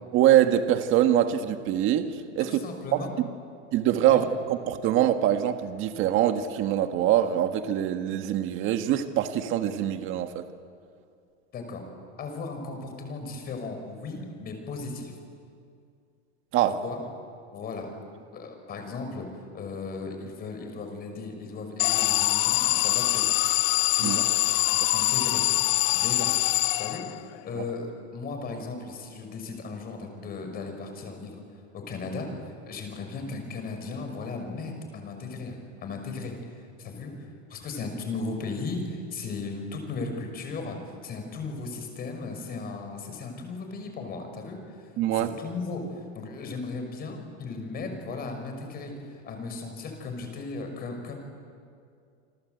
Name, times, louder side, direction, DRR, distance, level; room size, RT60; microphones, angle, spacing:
voice 1, 0.1-2.6 2.9-3.0 3.7-10.5 16.5-16.8 24.0-24.2 27.6-27.7 45.0-45.3, right 11 dB, 35° right, 7 dB, 1.7 m, -24 dB
voice 2, 2.4-3.1 4.1-4.2 11.5-11.8 12.2-15.1 16.6-17.0 17.5-17.9 18.3-19.3 19.5-23.2 24.0-24.3 24.6-25.4 25.9-26.3 26.8-31.4 31.7-36.3 36.8-37.1 37.5-40.8 41.0-44.6 45.1-51.1, left 3 dB, 25° left, 5 dB, 5.8 m, -36 dB
Alarm, 21.8-27.4, left 18 dB, 55° left, 1.0 m, -24 dB
28.5 x 25.0 x 8.1 m, 2.3 s
supercardioid pair, 150°, 36 cm